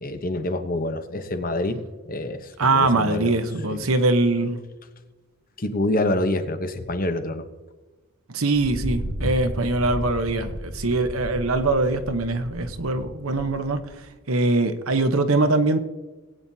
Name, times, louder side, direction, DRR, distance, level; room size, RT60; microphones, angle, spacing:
voice 1, 0.0-1.8 2.1-3.3 3.7-3.9 5.6-7.5, left 1 dB, 40° left, 8 dB, 0.9 m, -26 dB
voice 2, 2.6-4.6 8.3-13.8 14.3-15.8, right 2 dB, 80° right, 8 dB, 1.0 m, -22 dB
Thunder, 8.5-14.0, equal, 85° left, 3.5 m, -33 dB
19.5 x 9.0 x 2.8 m, 1.2 s
head